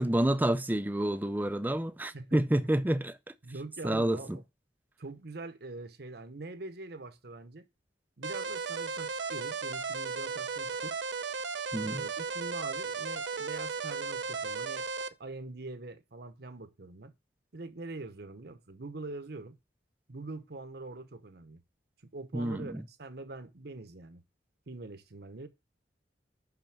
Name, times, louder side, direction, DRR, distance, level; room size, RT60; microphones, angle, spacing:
voice 1, 0.0-3.2 3.8-4.4 11.7-12.1 22.3-22.8, right 1 dB, 10° right, 0.4 m, -29 dB
voice 2, 2.1-2.6 3.4-4.4 5.0-7.6 8.2-11.0 11.8-17.1 17.5-19.6 20.1-21.6 22.0-24.2 24.7-25.5, right 3 dB, 65° right, 1.0 m, -44 dB
sound 1, 8.2-15.1, right 5 dB, 85° right, 0.6 m, -35 dB
6.0 x 5.8 x 6.0 m
head